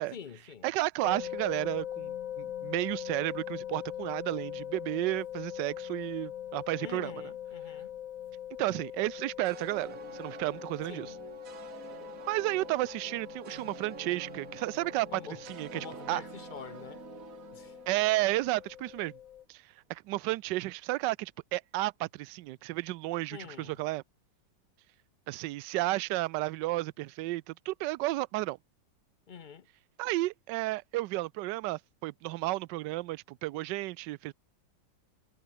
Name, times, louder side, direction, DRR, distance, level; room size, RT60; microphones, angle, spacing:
voice 1, 0.1-0.7 6.8-7.9 10.8-11.2 15.1-15.4 15.7-17.0 17.5-17.8 23.3-23.8 29.3-29.7, left 7 dB, 75° left, 0.4 m, -46 dB
voice 2, 0.6-7.1 8.6-11.1 12.3-15.1 15.5-16.2 17.9-19.1 19.5-19.6 19.9-24.0 25.3-28.6 30.0-34.3, right 18 dB, 75° right, 1.2 m, -32 dB
sound 1, 1.0-19.4, left 10 dB, 55° left, 1.0 m, -42 dB
sound 2, 9.4-18.8, right 8 dB, 50° right, 1.5 m, -48 dB
omnidirectional pair, 2.0 m